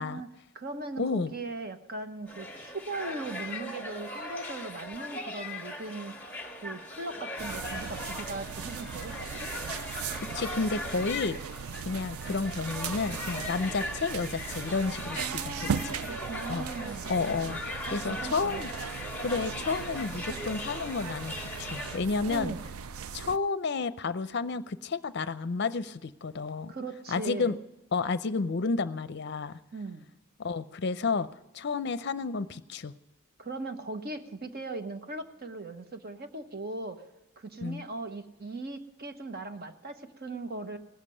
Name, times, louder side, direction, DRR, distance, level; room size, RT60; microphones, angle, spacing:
voice 1, 0.0-6.2 6.6-9.5 15.1-17.0 17.9-18.7 22.3-22.7 26.7-27.5 29.7-30.1 33.4-37.1 37.4-40.8, right 3 dB, 45° right, 7 dB, 1.1 m, -39 dB
voice 2, 1.0-1.3 10.2-11.4 11.8-16.0 16.5-16.7 17.1-18.7 19.2-22.6 23.1-26.7 27.1-27.6 27.9-29.6 30.4-31.3 31.5-32.9 37.6-37.8, left 4 dB, 50° left, 14 dB, 0.6 m, -31 dB
sound 1, 2.3-22.0, left 2 dB, 10° left, 1.8 m, -39 dB
sound 2, 7.4-23.4, right 6 dB, 85° right, 0.5 m, -38 dB
18.0 x 7.4 x 9.8 m, 0.99 s
head